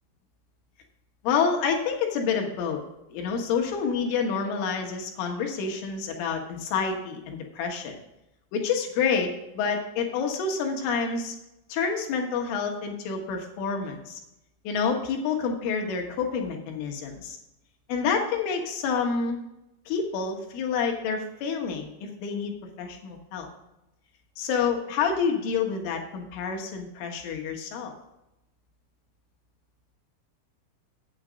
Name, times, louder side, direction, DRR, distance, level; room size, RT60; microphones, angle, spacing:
voice 1, 1.2-2.8 3.1-8.0 8.5-11.4 11.7-14.2 14.7-17.4 17.9-19.4 19.9-23.5 24.4-27.9, left 5 dB, 80° left, 2 dB, 3.9 m, -28 dB
8.7 x 8.1 x 5.1 m, 0.88 s
omnidirectional pair, 5.7 m